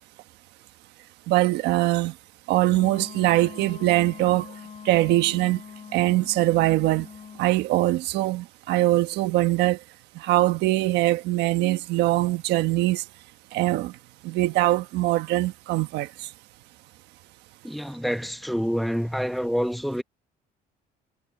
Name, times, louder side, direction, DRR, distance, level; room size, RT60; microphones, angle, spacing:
voice 1, 1.3-2.1 2.5-4.5 4.8-5.6 5.9-7.1 7.4-9.8 10.1-13.0 13.5-13.9 14.2-16.3, right 17 dB, 85° right, 1.3 m, -22 dB
Wind instrument woodwind instrument, 2.7-7.4, left 7 dB, 40° left, 7.3 m, -43 dB
voice 2, 17.6-20.0, equal, ahead, 1.2 m, -27 dB
cardioid pair, 110°, 17 cm